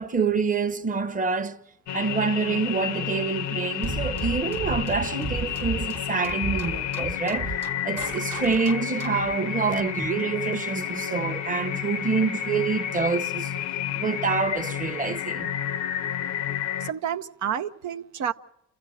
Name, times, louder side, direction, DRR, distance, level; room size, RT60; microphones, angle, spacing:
voice 1, 0.0-1.6 1.9-7.5 7.8-13.5 13.9-15.5, right 4 dB, 25° right, 0.9 m, -27 dB
sound 1, 1.9-16.9, left 9 dB, 65° left, 0.7 m, -31 dB
sound 2, 3.8-9.3, right 5 dB, 55° right, 1.4 m, -34 dB
voice 2, 16.8-18.3, right 9 dB, 70° right, 0.7 m, -30 dB
28.5 x 15.0 x 6.4 m
cardioid pair, 90°, 30 cm